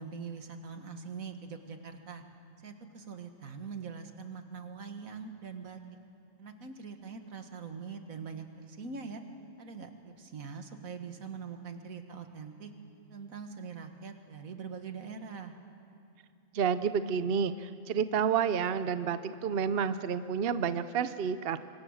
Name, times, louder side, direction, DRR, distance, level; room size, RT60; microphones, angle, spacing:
voice 1, 0.0-2.2 2.6-5.8 6.4-9.2 9.6-12.7 13.1-15.5, right 5 dB, 75° right, 6 dB, 2.0 m, -43 dB
voice 2, 16.5-21.6, right 7 dB, 55° right, 12 dB, 0.8 m, -30 dB
25.5 x 24.5 x 6.4 m, 2.5 s
omnidirectional pair, 1.4 m